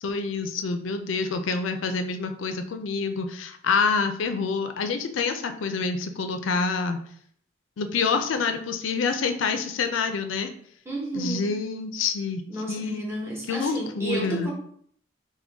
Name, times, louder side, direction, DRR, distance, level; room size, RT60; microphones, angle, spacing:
voice 1, 0.0-7.0 7.8-10.5 11.1-12.4 12.7-13.0 13.5-14.5, left 4 dB, 90° left, 7 dB, 0.4 m, -27 dB
voice 2, 10.9-11.6 12.5-14.5, right 1 dB, 15° right, -2 dB, 0.9 m, -32 dB
3.7 x 2.2 x 3.4 m, 0.63 s
head